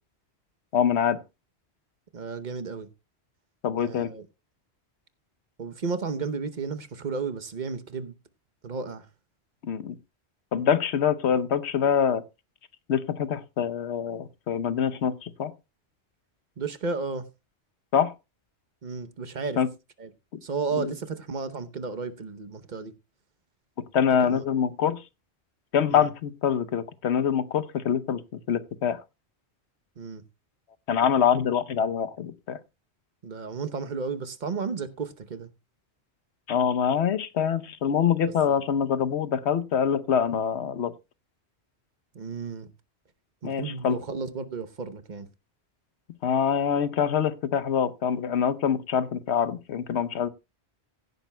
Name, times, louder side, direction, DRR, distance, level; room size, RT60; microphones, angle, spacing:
voice 1, 0.7-1.2 3.6-4.1 9.6-10.0 10.5-12.2 12.9-15.5 17.9-18.1 19.6-19.7 20.7-20.9 23.9-25.0 25.7-29.0 30.9-32.6 36.5-40.9 43.4-44.0 46.2-50.3, left 8 dB, 75° left, 1.1 m, -25 dB
voice 2, 2.1-2.9 3.8-4.2 5.6-8.2 8.6-9.1 16.6-17.3 18.8-19.6 20.0-20.1 20.4-22.9 24.1-24.4 25.9-26.1 30.0-30.2 33.2-35.5 38.2-38.6 42.1-42.7 43.4-45.3, right 4 dB, 45° right, 1.0 m, -33 dB
16.0 x 10.5 x 2.2 m
omnidirectional pair, 1.1 m